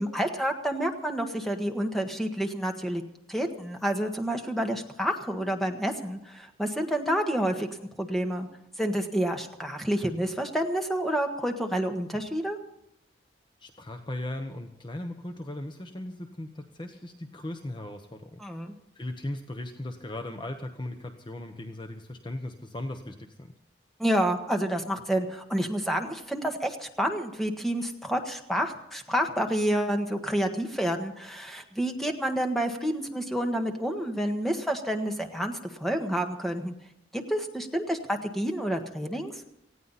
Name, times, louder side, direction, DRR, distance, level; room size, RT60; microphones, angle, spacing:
voice 1, 0.0-3.0 3.3-8.5 8.8-12.6 18.4-18.7 24.0-36.7 37.1-39.4, equal, ahead, 4 dB, 1.6 m, -29 dB
voice 2, 13.6-18.4 18.9-23.5, left 1 dB, 25° left, 6 dB, 1.0 m, -38 dB
19.0 x 16.0 x 4.2 m, 0.82 s
head